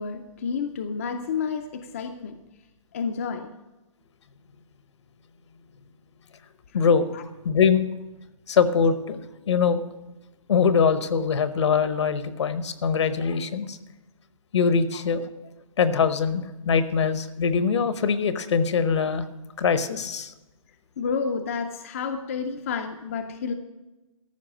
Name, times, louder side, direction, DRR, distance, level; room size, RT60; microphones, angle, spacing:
voice 1, 0.0-2.4 2.9-3.5 6.7-6.8 7.1-7.2 14.9-15.0 21.0-23.5, left 5 dB, 25° left, 6 dB, 0.5 m, -30 dB
voice 2, 6.7-7.0 7.4-7.8 8.5-9.2 9.5-9.8 10.5-13.8 14.5-15.2 15.8-19.2 19.6-20.3, left 6 dB, 55° left, 12 dB, 0.9 m, -22 dB
14.0 x 5.8 x 8.9 m, 1.1 s
hypercardioid pair, 170°, 18 cm